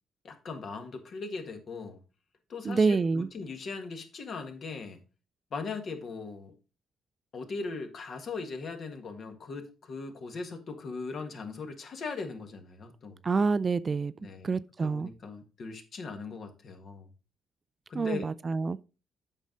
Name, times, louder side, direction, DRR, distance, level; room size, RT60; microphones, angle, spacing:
voice 1, 0.2-2.0 2.5-5.0 5.5-6.5 7.3-13.2 14.2-14.5 14.8-17.1 17.9-18.3, left 4 dB, 55° left, 1.6 m, -39 dB
voice 2, 2.6-3.3 13.2-14.1 14.4-15.1 17.9-18.8, right 4 dB, 35° right, 0.3 m, -27 dB
8.2 x 5.5 x 3.8 m
cardioid pair, 90°, 0 cm